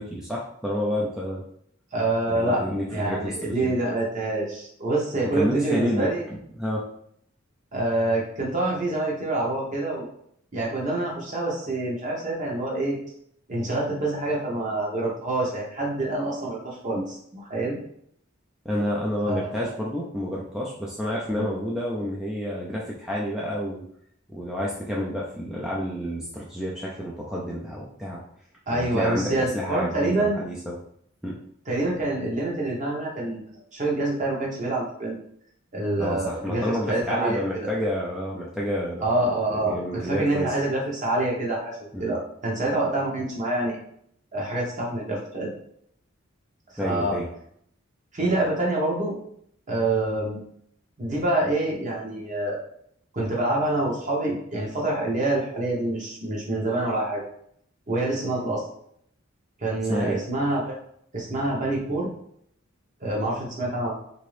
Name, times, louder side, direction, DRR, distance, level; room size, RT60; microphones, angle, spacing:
voice 1, 0.0-1.4 2.3-3.7 5.3-6.9 18.7-23.8 24.3-28.2 28.7-30.8 31.2-31.4 36.0-39.1 39.6-40.5 41.9-42.1 46.8-47.3 59.9-60.2, equal, 5° right, -5 dB, 0.4 m, -29 dB
voice 2, 1.9-2.6 2.9-6.2 7.7-10.1 10.5-13.0 13.5-17.8 19.3-19.7 21.3-21.5 28.7-30.4 31.7-33.4 33.7-35.2 35.7-37.7 39.0-43.8 44.3-45.5 46.8-47.2 48.1-49.1 49.7-50.4 51.0-52.6 53.1-57.3 57.9-58.6 59.6-60.8 61.1-62.1 63.0-63.9, right 2 dB, 40° right, -3 dB, 0.9 m, -26 dB
2.9 x 2.6 x 3.2 m, 0.69 s
head